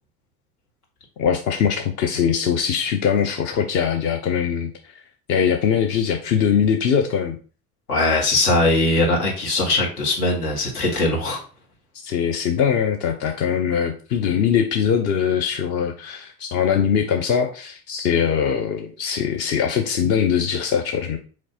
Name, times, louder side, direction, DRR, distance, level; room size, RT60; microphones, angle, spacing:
voice 1, 1.2-4.7 5.3-7.4 12.0-21.2, left 7 dB, 25° left, 4 dB, 0.3 m, -21 dB
voice 2, 7.9-11.4, left 2 dB, 75° left, -1 dB, 1.5 m, -20 dB
4.1 x 3.0 x 2.8 m, 0.38 s
figure-of-eight pair, 75°, 46 cm